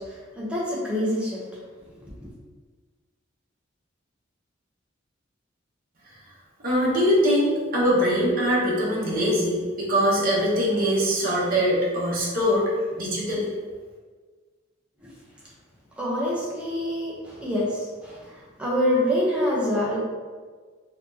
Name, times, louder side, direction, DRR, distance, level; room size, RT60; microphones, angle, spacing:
voice 1, 0.1-1.4 2.0-2.1 16.0-18.2 18.6-20.0, equal, 5° right, -6 dB, 0.8 m, -26 dB
voice 2, 6.6-12.6 12.9-13.5, equal, 45° right, -5 dB, 0.9 m, -22 dB
4.1 x 2.9 x 2.8 m, 1.5 s
head